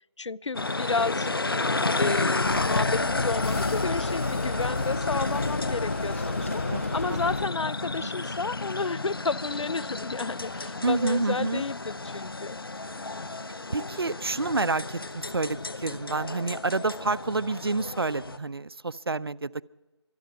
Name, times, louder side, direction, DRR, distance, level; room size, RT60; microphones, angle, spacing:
voice 1, 0.2-1.6 2.0-6.6 6.9-12.6, left 4 dB, 80° left, 23 dB, 0.4 m, -31 dB
sound 1, 0.5-18.4, left 3 dB, 50° left, 0.9 m, -31 dB
voice 2, 1.6-2.0 4.9-5.0 6.7-7.2 7.9-8.1 10.8-11.7 13.7-19.6, right 3 dB, 55° right, 18 dB, 0.5 m, -29 dB
sound 2, 2.4-7.5, left 3 dB, 30° left, 0.7 m, -32 dB
25.0 x 10.0 x 5.2 m, 1.1 s
figure-of-eight pair, 165°, 15 cm